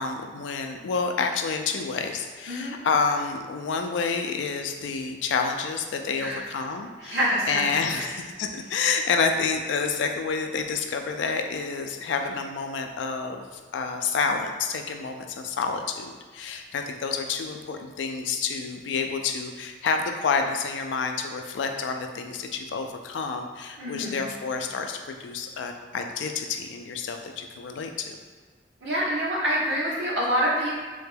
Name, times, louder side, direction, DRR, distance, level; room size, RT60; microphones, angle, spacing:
voice 1, 0.0-28.2, left 5 dB, 85° left, 5 dB, 0.3 m, -29 dB
voice 2, 7.0-7.6 23.8-24.2 28.8-30.7, equal, 80° right, -6 dB, 1.0 m, -26 dB
3.4 x 2.2 x 3.3 m, 1.5 s
head